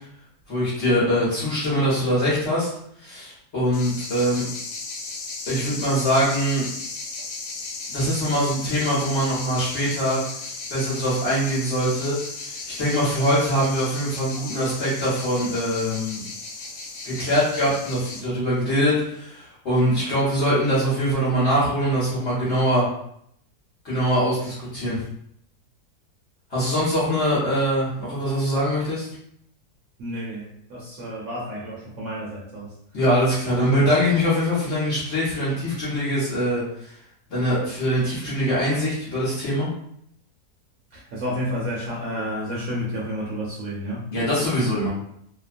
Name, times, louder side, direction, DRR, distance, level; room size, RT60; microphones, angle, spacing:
voice 1, 0.5-2.7 3.0-4.4 5.5-6.6 7.9-10.2 10.7-16.2 17.0-22.9 23.8-25.0 26.5-29.1 32.9-36.9 37.3-39.7 44.1-44.9, equal, 50° left, -8 dB, 1.1 m, -23 dB
sound 1, 3.7-18.2, left 3 dB, 85° left, 1.2 m, -35 dB
voice 2, 30.0-32.7 40.9-44.0, equal, 65° right, -5 dB, 1.0 m, -30 dB
2.8 x 2.1 x 2.5 m, 0.72 s
omnidirectional pair, 1.7 m